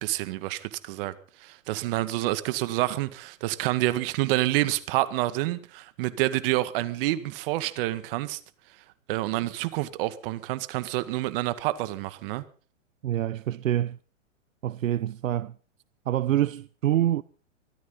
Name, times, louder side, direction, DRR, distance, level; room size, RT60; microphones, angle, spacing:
voice 1, 0.0-8.4 9.1-12.4, right 16 dB, 45° right, 2.0 m, -28 dB
voice 2, 13.0-14.0 14.6-15.5 16.1-17.2, right 12 dB, 80° right, 0.8 m, -26 dB
24.0 x 14.0 x 4.0 m
hypercardioid pair, 135°, 39 cm